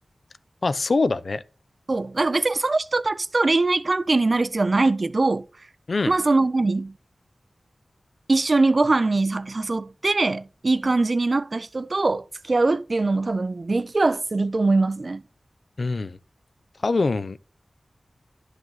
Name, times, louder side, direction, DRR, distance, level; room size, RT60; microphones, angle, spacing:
voice 1, 0.6-1.4 5.9-6.1 15.8-16.2 16.8-17.5, left 3 dB, 65° left, 0.6 m, -24 dB
voice 2, 1.9-5.5 6.1-7.0 8.3-15.2, right 3 dB, 50° right, 0.4 m, -22 dB
11.0 x 4.9 x 4.0 m
wide cardioid pair, 60°, 0 cm